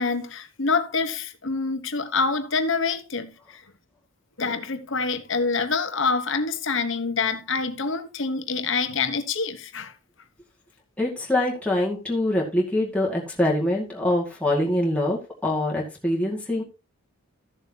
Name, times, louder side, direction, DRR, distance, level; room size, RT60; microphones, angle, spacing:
voice 1, 0.0-3.3 4.4-9.9, left 4 dB, 60° left, 1.2 m, -26 dB
voice 2, 11.0-16.6, left 1 dB, 5° left, 2.1 m, -24 dB
14.0 x 7.2 x 2.9 m
head